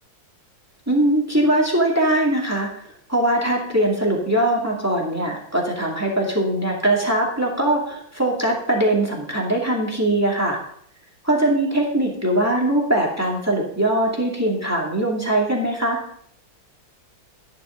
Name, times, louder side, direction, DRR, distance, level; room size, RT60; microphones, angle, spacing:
voice 1, 0.9-2.7 3.1-10.6 11.2-16.0, right 1 dB, 10° right, -2 dB, 2.2 m, -21 dB
12.5 x 10.5 x 3.8 m, 0.66 s
omnidirectional pair, 2.1 m